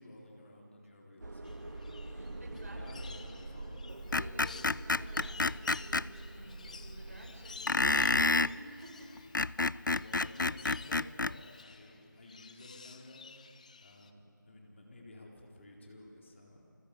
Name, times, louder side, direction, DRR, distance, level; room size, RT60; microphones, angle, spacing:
voice 1, 0.0-1.7 2.4-3.9 10.0-13.3 13.8-16.7, left 1 dB, 35° left, 0 dB, 4.0 m, -53 dB
sound 1, 1.2-8.2, right 2 dB, 65° right, 3.4 m, -45 dB
sound 2, 1.4-14.1, left 5 dB, 20° left, 0.8 m, -53 dB
voice 2, 2.0-3.2 4.1-9.1 9.7-10.0 10.3-10.5, right 1 dB, 45° right, 0 dB, 6.8 m, -53 dB
Screech, 4.1-6.1 7.7-8.5 9.2-11.4, left 3 dB, 70° left, 0.6 m, -29 dB
29.0 x 24.5 x 8.4 m, 3.0 s
figure-of-eight pair, 165°, 11 cm